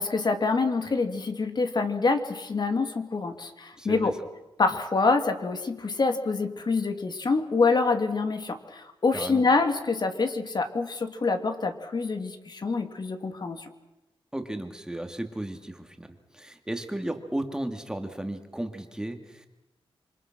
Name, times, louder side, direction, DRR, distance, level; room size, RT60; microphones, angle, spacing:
voice 1, 0.0-4.1 4.6-13.7, left 4 dB, 50° left, 7 dB, 2.5 m, -26 dB
voice 2, 3.8-4.1 9.1-9.4 14.3-16.1 16.3-19.5, right 1 dB, 5° right, 6 dB, 2.5 m, -34 dB
27.0 x 25.0 x 6.2 m, 0.99 s
wide cardioid pair, 95°, 10 cm